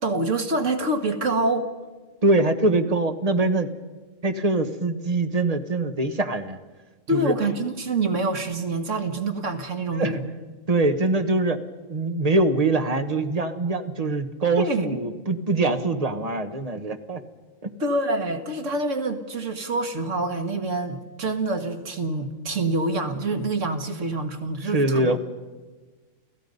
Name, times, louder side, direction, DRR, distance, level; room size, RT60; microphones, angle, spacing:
voice 1, 0.0-1.7 7.1-10.2 14.6-15.2 17.8-25.1, right 2 dB, 75° right, 6 dB, 2.0 m, -26 dB
voice 2, 2.2-3.7 4.2-6.6 7.1-7.3 9.9-10.2 10.7-11.6 11.9-17.2 17.6-17.7 24.6-25.2, right 2 dB, 30° right, 7 dB, 1.4 m, -23 dB
29.5 x 17.5 x 5.4 m, 1.3 s
omnidirectional pair, 1.3 m